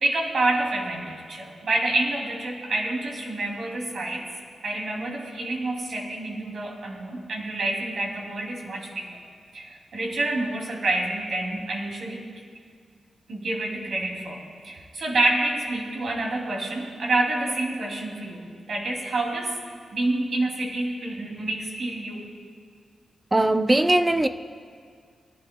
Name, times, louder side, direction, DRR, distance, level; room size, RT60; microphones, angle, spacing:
voice 1, 0.0-4.2 4.6-9.2 9.5-12.3 13.3-22.2, right 2 dB, 65° right, 2.7 m, -28 dB
voice 2, 23.3-24.3, right 1 dB, 20° right, 0.5 m, -20 dB
22.0 x 11.5 x 2.3 m
cardioid pair, 80°, 0 cm